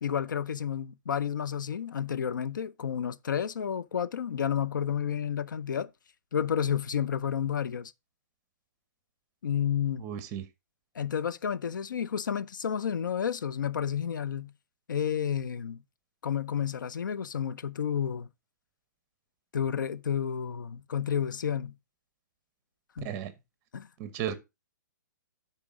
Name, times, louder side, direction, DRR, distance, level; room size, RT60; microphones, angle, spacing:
voice 1, 0.0-5.9 6.3-7.9 9.4-10.0 10.9-14.5 14.9-15.8 16.2-18.3 19.5-21.7 23.0-23.2 23.7-23.9, left 8 dB, 90° left, 0.6 m, -31 dB
voice 2, 10.0-10.5 23.0-23.3 24.0-24.4, right 9 dB, 25° right, 0.9 m, -34 dB
11.5 x 4.4 x 3.7 m
hypercardioid pair, 160°, 10 cm